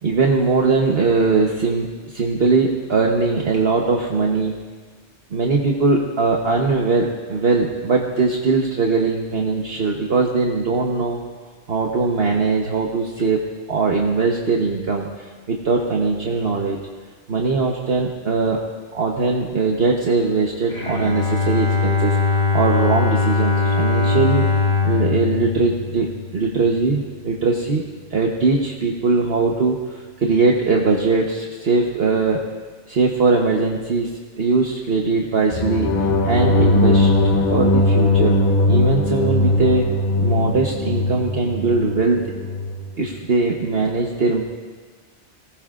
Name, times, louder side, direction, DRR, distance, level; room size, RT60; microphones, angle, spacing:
voice 1, 0.0-4.5 5.3-11.2 11.7-13.4 13.7-15.1 15.5-16.8 17.3-18.6 18.9-22.2 22.5-24.5 24.8-26.1 26.3-27.8 28.1-29.8 30.2-32.4 32.9-34.1 34.4-35.9 36.2-37.1 37.5-38.4 38.7-39.8 40.2-42.2 43.0-44.4, right 4 dB, 55° right, -1 dB, 1.3 m, -20 dB
Bowed string instrument, 20.7-26.7, left 4 dB, 60° left, 4.5 m, -21 dB
sound 1, 35.5-42.8, left 2 dB, 40° left, 1.0 m, -19 dB
24.0 x 18.5 x 2.5 m, 1.4 s
omnidirectional pair, 1.3 m